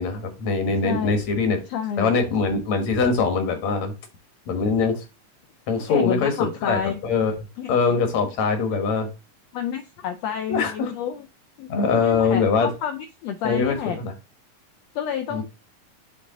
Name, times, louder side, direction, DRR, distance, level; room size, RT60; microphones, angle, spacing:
voice 1, 0.0-1.6 2.0-3.9 4.5-5.0 5.7-7.4 7.7-9.1 10.5-10.9 11.7-12.7 13.4-14.1 15.3-15.4, left 4 dB, 65° left, 2.5 m, -22 dB
voice 2, 0.8-1.2 1.7-2.1 5.9-6.9 7.6-7.7 9.5-11.3 11.6-14.1 14.9-15.4, left 8 dB, 80° left, 1.5 m, -29 dB
8.0 x 3.6 x 3.7 m
omnidirectional pair, 3.6 m